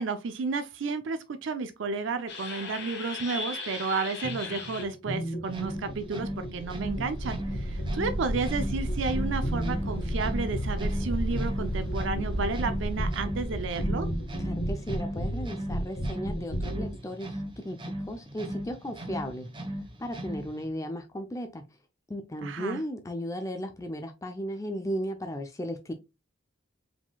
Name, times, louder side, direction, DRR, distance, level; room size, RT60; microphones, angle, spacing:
voice 1, 0.0-14.1 22.4-22.8, right 4 dB, 65° right, 0.4 m, -32 dB
sound 1, 2.3-17.0, equal, 55° left, 1.3 m, -36 dB
sound 2, 5.4-20.7, equal, 25° right, 0.9 m, -38 dB
sound 3, 5.8-15.5, equal, 80° left, 1.3 m, -33 dB
voice 2, 14.4-19.5 20.0-21.6 22.1-25.9, equal, 15° left, 0.4 m, -35 dB
4.8 x 3.7 x 2.2 m
head